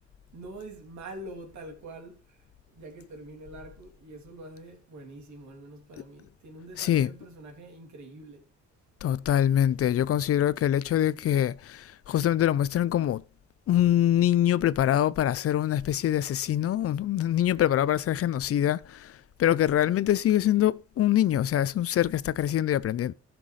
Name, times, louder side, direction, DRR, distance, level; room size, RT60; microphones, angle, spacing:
voice 1, 0.3-2.4 2.7-8.5, right 2 dB, 70° right, 2.8 m, -45 dB
voice 2, 6.8-7.1 9.0-13.2 13.7-19.1 19.4-23.1, left 11 dB, 50° left, 0.5 m, -24 dB
15.0 x 6.0 x 3.2 m
cardioid pair, 90°, 30 cm